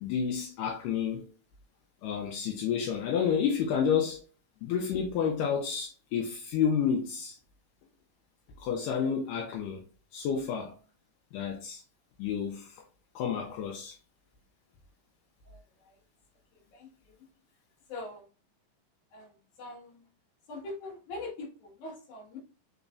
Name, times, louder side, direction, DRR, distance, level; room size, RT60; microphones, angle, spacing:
voice 1, 0.0-1.2 2.0-4.2 4.6-7.4 8.6-9.8 10.1-10.7 11.3-11.8 12.2-12.8 13.2-14.0, left 7 dB, 75° left, 2.2 m, -30 dB
voice 2, 17.9-18.2 19.1-19.3 19.6-19.9 20.5-22.4, left 2 dB, 60° left, 2.6 m, -41 dB
5.4 x 4.0 x 2.4 m
omnidirectional pair, 4.2 m